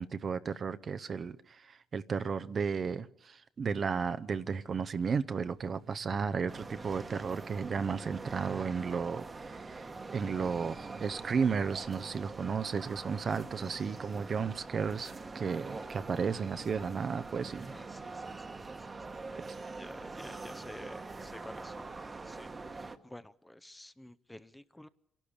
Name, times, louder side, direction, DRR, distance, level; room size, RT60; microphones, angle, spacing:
voice 1, 0.0-17.7 19.5-19.6, right 6 dB, 45° right, 0.7 m, -34 dB
sound 1, 5.1-8.6 10.3-13.4 15.5-17.7, right 3 dB, 65° right, 2.0 m, -57 dB
sound 2, 6.5-23.0, right 3 dB, 30° right, 1.2 m, -44 dB
voice 2, 17.7-19.1 19.8-21.9 22.2-24.9, left 1 dB, 10° left, 0.6 m, -51 dB
26.0 x 11.5 x 8.7 m
cardioid pair, 90°, 0 cm